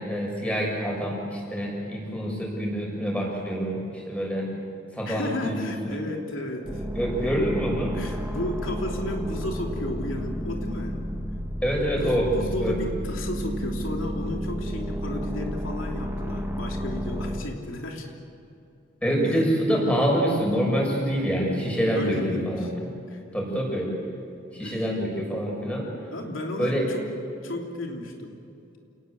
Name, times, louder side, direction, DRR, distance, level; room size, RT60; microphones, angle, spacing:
voice 1, 0.0-4.5 4.9-6.0 6.9-7.9 11.6-12.3 12.6-12.8 19.0-22.9 23.3-23.9 24.5-25.9 26.6-26.9, equal, 5° left, -2 dB, 6.9 m, -26 dB
voice 2, 5.0-6.8 7.9-11.0 11.9-18.1 21.9-22.7 23.1-23.2 24.6-24.8 26.1-27.1 27.4-28.4, left 1 dB, 85° left, 1 dB, 3.2 m, -33 dB
sound 1, 6.7-17.4, equal, 10° right, 2.0 m, -32 dB
29.0 x 19.5 x 8.2 m, 2.6 s
head